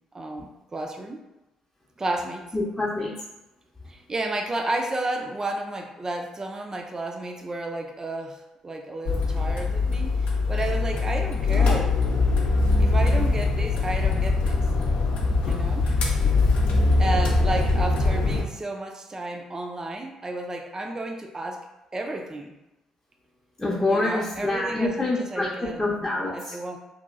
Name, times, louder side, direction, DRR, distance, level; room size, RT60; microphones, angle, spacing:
voice 1, 0.1-1.2 2.0-2.5 3.9-12.0 12.8-14.6 15.4-16.0 17.0-22.5 23.9-25.8 26.3-26.8, right 2 dB, 25° right, 3 dB, 0.5 m, -32 dB
voice 2, 2.5-3.1 23.6-26.6, left 2 dB, 15° left, -6 dB, 0.7 m, -26 dB
sound 1, 9.0-18.4, left 3 dB, 65° left, 0.6 m, -22 dB
2.9 x 2.7 x 2.4 m, 0.97 s
hypercardioid pair, 45°, 2 cm